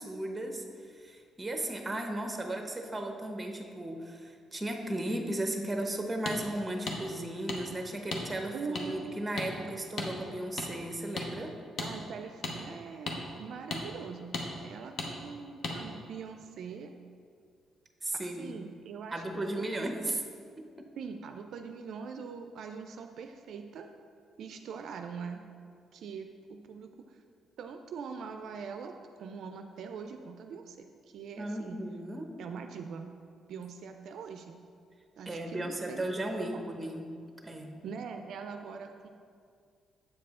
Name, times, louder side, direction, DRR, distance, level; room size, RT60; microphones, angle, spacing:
voice 1, 0.0-11.5 18.0-18.6 19.1-20.2 20.6-20.9 31.4-32.4 35.3-37.1 37.4-37.7, right 1 dB, 15° right, 4 dB, 0.8 m, -36 dB
sound 1, 6.3-6.4 6.9-7.0 7.5-7.6 8.1-8.2 8.7-8.8 9.4-9.5 10.0-10.1 10.6-10.7 11.2-11.3 11.8-11.9 12.4-12.5 13.1-13.2 13.7-13.8 14.3-14.5 15.0-15.1 15.6-15.8, left 3 dB, 60° left, 0.9 m, -34 dB
voice 2, 8.5-9.2 10.6-10.7 11.8-14.4 14.6-16.9 18.2-19.2 19.5-20.3 21.0-23.9 24.4-25.4 25.9-27.2 27.6-31.8 32.4-33.1 33.5-34.6 35.2-36.6 37.8-39.1, right 5 dB, 70° right, 6 dB, 0.3 m, -43 dB
7.6 x 4.7 x 3.6 m, 2.2 s
cardioid pair, 90°, 0 cm